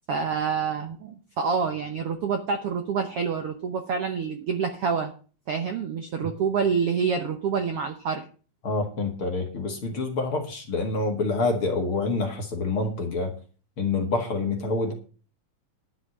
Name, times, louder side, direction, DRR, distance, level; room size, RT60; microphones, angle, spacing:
voice 1, 0.1-5.1 5.5-8.2, right 6 dB, 65° right, 6 dB, 1.5 m, -27 dB
voice 2, 8.6-13.3 13.8-14.9, left 3 dB, 45° left, 3 dB, 2.3 m, -27 dB
11.5 x 5.7 x 8.6 m, 0.38 s
omnidirectional pair, 4.0 m